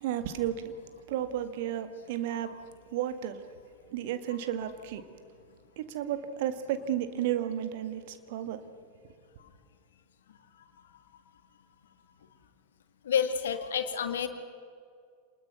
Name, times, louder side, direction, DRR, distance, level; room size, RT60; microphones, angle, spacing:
voice 1, 0.0-0.7 1.1-2.5 2.9-3.4 3.9-5.0 5.8-8.6, right 11 dB, 50° right, 10 dB, 1.7 m, -32 dB
voice 2, 13.1-14.3, left 7 dB, 65° left, 9 dB, 1.9 m, -29 dB
27.5 x 20.5 x 6.1 m, 2.2 s
figure-of-eight pair, 90°, 0 cm